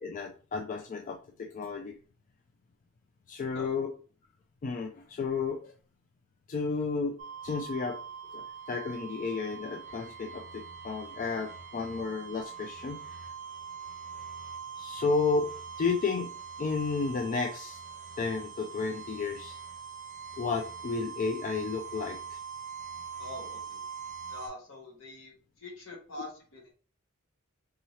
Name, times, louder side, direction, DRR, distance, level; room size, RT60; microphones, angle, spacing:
voice 1, 0.0-1.9 3.3-3.9 4.6-5.7 6.5-7.2 7.4-8.0 8.3-13.2 14.8-15.5 15.8-16.3 16.6-17.8 18.2-19.6 20.4-22.4, left 4 dB, 40° left, 2 dB, 0.3 m, -32 dB
sound 1, 7.2-24.5, right 6 dB, 35° right, 0.7 m, -43 dB
voice 2, 23.2-23.8 24.3-25.3 25.6-26.7, left 2 dB, 70° left, -1 dB, 1.4 m, -44 dB
3.6 x 2.8 x 3.1 m, 0.40 s
head